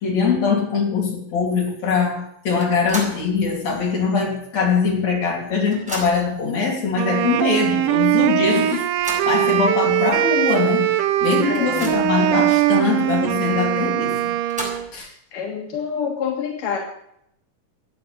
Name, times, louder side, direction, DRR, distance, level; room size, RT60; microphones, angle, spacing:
voice 1, 0.0-8.8 9.3-10.9 11.2-14.3 14.9-15.1, left 5 dB, 60° left, -1 dB, 4.6 m, -22 dB
sound 1, 2.6-3.3 3.7-3.8 4.9-5.0 5.3-6.4 7.1-7.2 7.6-7.7 8.7-9.4 10.1-10.2 10.6-10.7 11.2-12.2 14.2-15.1, right 1 dB, ahead, 4.5 m, -34 dB
Wind instrument woodwind instrument, 7.0-14.9, right 13 dB, 85° right, 2.4 m, -21 dB
voice 2, 11.5-11.9 15.3-16.8, left 7 dB, 85° left, 1 dB, 3.5 m, -27 dB
14.0 x 8.5 x 9.2 m, 0.74 s
omnidirectional pair, 3.6 m